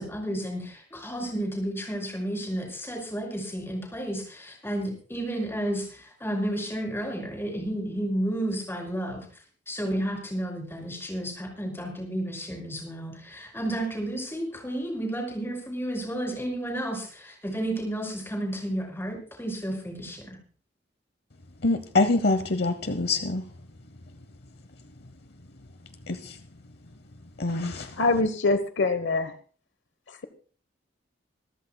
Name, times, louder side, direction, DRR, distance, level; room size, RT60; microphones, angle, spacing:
voice 1, 0.0-9.2 9.7-20.4, right 1 dB, 15° left, 1 dB, 5.8 m, -32 dB
voice 2, 21.6-23.4 26.1-26.4 27.4-27.9, left 2 dB, 60° left, 10 dB, 0.9 m, -25 dB
voice 3, 28.0-29.3, left 3 dB, 80° left, 11 dB, 1.0 m, -24 dB
26.0 x 13.5 x 2.2 m, 0.42 s
head